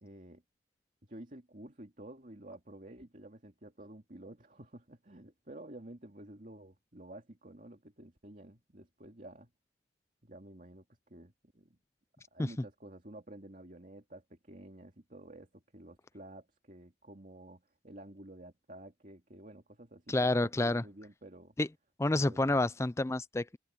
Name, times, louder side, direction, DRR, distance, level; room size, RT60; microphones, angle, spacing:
voice 1, 0.0-0.4 1.0-9.5 10.2-11.8 12.3-21.5 22.2-22.7, right 1 dB, 45° right, 2.5 m, -51 dB
voice 2, 20.1-20.8 21.6-21.7 22.0-23.6, left 2 dB, 15° left, 0.4 m, -29 dB
open air
head